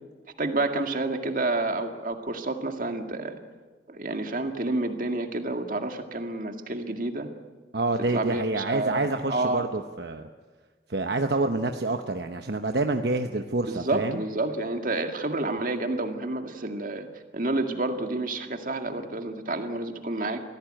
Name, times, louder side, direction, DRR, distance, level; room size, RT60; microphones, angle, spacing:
voice 1, 0.4-3.4 3.9-7.3 8.1-9.0 9.3-9.7 13.7-17.1 17.3-20.4, right 2 dB, 50° right, 5 dB, 2.1 m, -29 dB
voice 2, 7.7-10.3 10.9-14.2, right 2 dB, 70° right, 6 dB, 1.0 m, -27 dB
24.5 x 16.5 x 9.0 m, 1.4 s
head